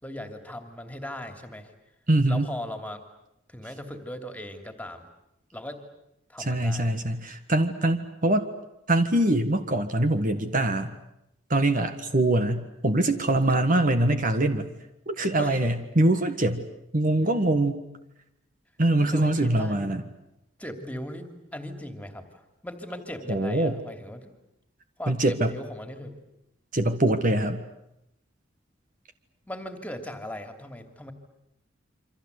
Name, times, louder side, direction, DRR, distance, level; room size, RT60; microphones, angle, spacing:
voice 1, 0.0-1.7 2.3-3.0 3.5-5.1 5.5-5.8 6.3-6.9 13.5-13.7 15.3-15.6 19.0-19.9 20.6-24.3 25.0-26.1 29.5-31.1, left 1 dB, 5° left, 7 dB, 2.9 m, -38 dB
voice 2, 2.1-2.5 6.4-8.5 8.9-10.9 11.5-14.7 15.1-16.6 16.9-17.8 18.8-20.0 23.3-23.8 25.1-25.5 26.7-27.6, right 1 dB, 45° right, 8 dB, 1.6 m, -23 dB
28.0 x 25.5 x 8.3 m, 0.84 s
head